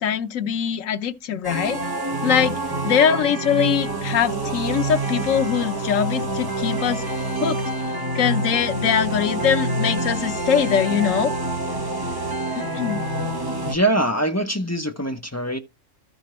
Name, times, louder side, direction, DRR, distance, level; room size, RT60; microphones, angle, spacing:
voice 1, 0.0-1.8 2.2-2.6 2.8-7.0 7.4-7.6 8.1-11.3 12.6-13.0, left 8 dB, 90° left, 1.1 m, -22 dB
sound 1, 1.4-13.7, right 2 dB, 20° right, 1.3 m, -27 dB
voice 2, 13.6-15.6, right 1 dB, 20° left, 0.5 m, -23 dB
13.5 x 5.1 x 3.0 m
omnidirectional pair, 1.3 m